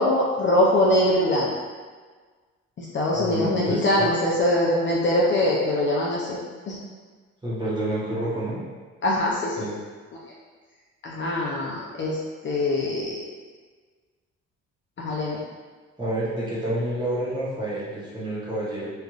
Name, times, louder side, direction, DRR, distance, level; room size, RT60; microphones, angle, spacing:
voice 1, 0.0-1.5 2.8-6.4 6.7-6.8 9.0-9.6 11.0-12.2 12.4-13.2 15.0-15.4, left 1 dB, 40° left, -4 dB, 0.5 m, -22 dB
voice 2, 3.1-4.1 7.4-8.6 9.6-9.8 16.0-18.9, right 1 dB, 15° right, -7 dB, 0.9 m, -29 dB
3.1 x 2.5 x 2.3 m, 1.4 s
cardioid pair, 90°, 30 cm